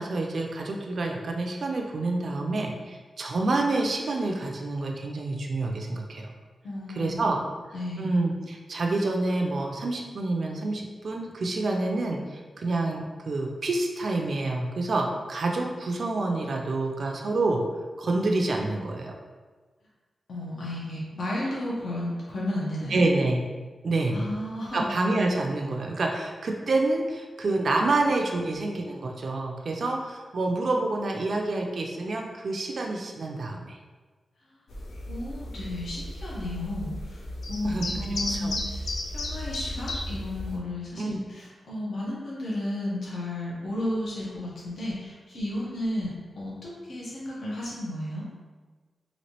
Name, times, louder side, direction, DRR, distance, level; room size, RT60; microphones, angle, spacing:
voice 1, 0.0-6.3 6.9-7.4 8.0-17.6 18.0-19.1 22.9-23.4 23.8-24.2 24.7-33.8 37.6-37.9 38.3-38.5 41.0-41.2, right 2 dB, 55° right, 1 dB, 0.3 m, -28 dB
voice 2, 6.6-7.3 7.7-8.2 20.3-23.0 24.1-24.9 35.1-37.2 37.5-48.2, left 1 dB, 70° left, -6 dB, 0.9 m, -33 dB
sound 1, 34.7-40.6, left 1 dB, 90° left, 0.4 m, -34 dB
3.0 x 2.8 x 2.8 m, 1.4 s
wide cardioid pair, 155°, 0 cm